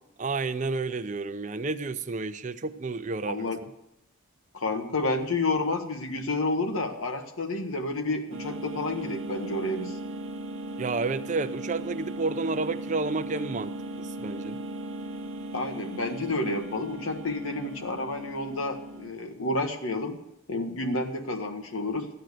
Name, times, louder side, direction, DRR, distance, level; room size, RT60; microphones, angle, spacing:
voice 1, 0.2-3.5 10.8-14.6, right 3 dB, 35° right, 11 dB, 0.5 m, -30 dB
voice 2, 3.3-3.6 4.5-10.0 15.5-20.2 20.5-22.1, left 2 dB, 80° left, 5 dB, 1.2 m, -30 dB
sound 1, 8.3-19.1, right 1 dB, 65° right, 0.9 m, -37 dB
13.0 x 9.0 x 6.6 m, 0.81 s
head